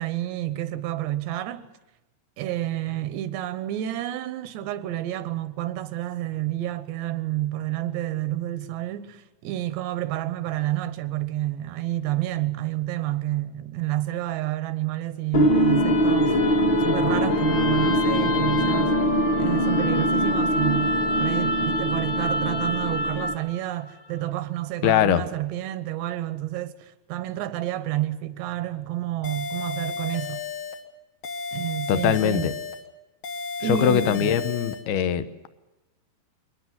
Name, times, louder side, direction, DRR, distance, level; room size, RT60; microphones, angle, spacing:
voice 1, 0.0-1.7 2.4-18.9 19.4-20.9 21.2-30.4 31.5-32.5 33.6-34.3, right 14 dB, 85° right, 3.3 m, -29 dB
sound 1, 15.3-23.5, equal, 35° left, 2.3 m, -22 dB
voice 2, 24.8-25.2 31.9-32.5 33.6-35.5, left 10 dB, 75° left, 2.9 m, -22 dB
sound 2, 29.2-30.8 31.2-32.8 33.2-34.8, left 5 dB, 55° left, 2.8 m, -33 dB
23.0 x 19.0 x 7.6 m
omnidirectional pair, 4.8 m